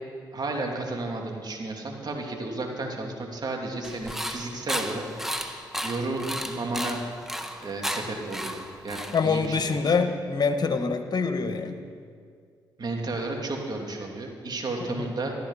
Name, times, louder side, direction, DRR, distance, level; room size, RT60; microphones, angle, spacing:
voice 1, 0.3-5.0 5.8-7.0 7.6-9.9 12.8-15.3, right 2 dB, 50° right, 1 dB, 2.8 m, -32 dB
sound 1, 3.8-9.6, equal, 5° right, 1.5 m, -34 dB
voice 2, 9.1-11.8 14.8-15.1, left 5 dB, 50° left, 8 dB, 1.4 m, -25 dB
13.5 x 13.0 x 5.6 m, 2.2 s
supercardioid pair, 50°, 9 cm